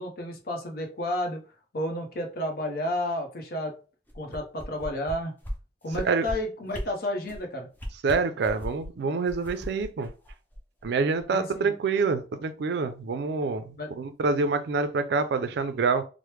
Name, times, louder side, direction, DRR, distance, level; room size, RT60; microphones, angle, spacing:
voice 1, 0.0-1.4 1.7-3.7 4.1-5.4 5.8-7.7 11.3-11.7 13.7-13.9, left 1 dB, 60° left, 0.8 m, -31 dB
sound 1, 4.1-5.1 5.4-5.5 5.9-6.3 6.7-6.8 7.2-7.4 7.7-8.9 9.3-10.9 11.2-11.3, equal, 10° left, 0.5 m, -37 dB
voice 2, 8.0-10.1 10.8-16.0, right 4 dB, 65° right, 0.4 m, -26 dB
3.1 x 2.0 x 3.2 m
head